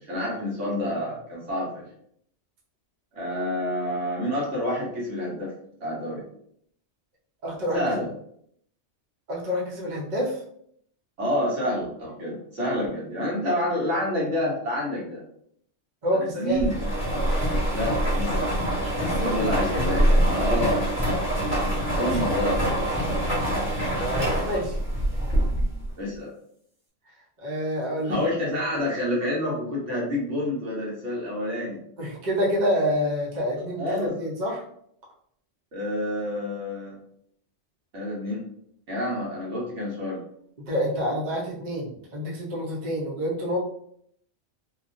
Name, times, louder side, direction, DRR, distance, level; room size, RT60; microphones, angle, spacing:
voice 1, 0.1-1.8 3.1-5.5 5.8-6.2 7.7-8.1 11.2-15.2 16.1-16.7 17.7-18.3 19.2-20.8 21.9-22.6 26.0-26.3 28.0-31.8 33.8-34.1 35.7-37.0 37.9-38.4 38.9-40.2, left 1 dB, 85° right, -4 dB, 1.4 m, -28 dB
voice 2, 7.4-7.8 9.3-10.4 16.0-16.7 19.0-19.3 22.1-22.2 23.9-24.8 27.4-28.2 32.0-34.6 40.6-43.6, equal, 45° right, -5 dB, 0.8 m, -28 dB
sound 1, 16.6-25.9, right 1 dB, 10° right, 1.2 m, -24 dB
2.8 x 2.4 x 2.5 m, 0.67 s
omnidirectional pair, 1.2 m